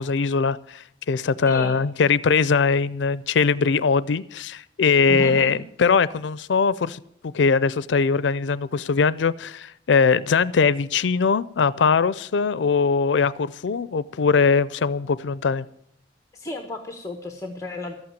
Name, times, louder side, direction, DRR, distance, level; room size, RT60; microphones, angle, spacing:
voice 1, 0.0-15.7, left 5 dB, 85° left, 0.4 m, -21 dB
voice 2, 1.4-1.8 5.1-5.6 16.3-17.9, left 2 dB, 20° left, 1.1 m, -33 dB
13.0 x 8.7 x 9.0 m
head